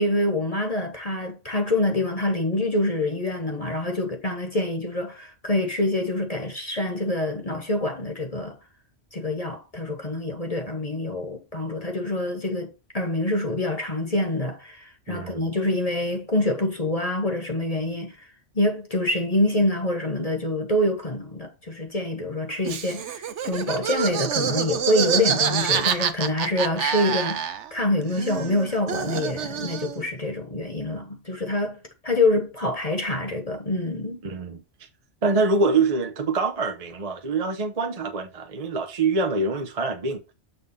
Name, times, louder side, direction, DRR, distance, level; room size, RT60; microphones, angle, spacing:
voice 1, 0.0-8.6 9.1-18.2 18.5-34.2, left 1 dB, 30° left, 1.3 m, -26 dB
voice 2, 15.1-15.4 34.2-34.6 35.2-40.2, right 3 dB, 35° right, 0.8 m, -25 dB
Laughter, 22.6-27.8 28.1-30.0, right 8 dB, 70° right, 1.0 m, -27 dB
6.9 x 3.5 x 5.5 m
omnidirectional pair, 1.2 m